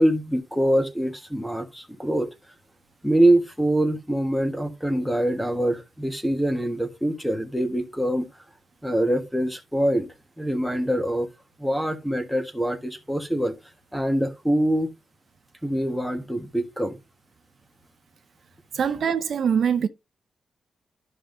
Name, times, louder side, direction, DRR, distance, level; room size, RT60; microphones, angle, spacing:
voice 1, 0.0-2.3 3.0-8.3 8.8-10.1 10.4-11.3 11.6-13.5 13.9-14.9 15.6-17.0, right 1 dB, ahead, 1.4 m, -24 dB
voice 2, 18.7-19.9, right 7 dB, 60° right, 0.6 m, -23 dB
12.5 x 5.5 x 2.6 m
wide cardioid pair, 145°, 0 cm